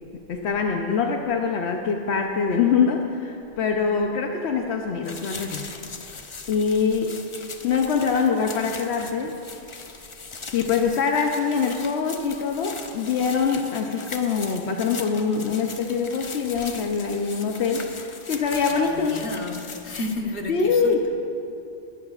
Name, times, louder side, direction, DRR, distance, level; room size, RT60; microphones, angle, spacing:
voice 1, 0.3-5.7 6.5-7.2 7.6-9.4 10.5-19.2 20.5-21.1, left 5 dB, 80° left, 2 dB, 1.0 m, -24 dB
sound 1, 5.0-20.2, left 4 dB, 35° left, 0.6 m, -39 dB
voice 2, 18.9-21.1, left 2 dB, 60° left, 1 dB, 1.4 m, -32 dB
20.5 x 12.0 x 2.4 m, 2.7 s
omnidirectional pair, 1.1 m